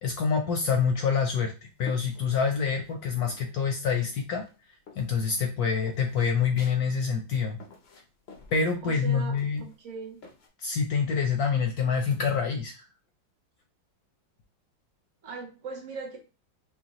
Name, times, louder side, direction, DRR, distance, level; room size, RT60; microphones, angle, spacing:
voice 1, 0.0-4.4 5.0-7.6 8.5-9.6 10.6-12.9, left 6 dB, 70° left, 3 dB, 0.9 m, -26 dB
sound 1, 1.1-3.0 3.3-4.2 4.4-10.5, left 4 dB, 85° left, 0.5 m, -50 dB
voice 2, 8.8-10.2 15.2-16.2, right 4 dB, 45° right, 1 dB, 1.2 m, -39 dB
5.4 x 2.2 x 2.9 m, 0.32 s
omnidirectional pair, 2.2 m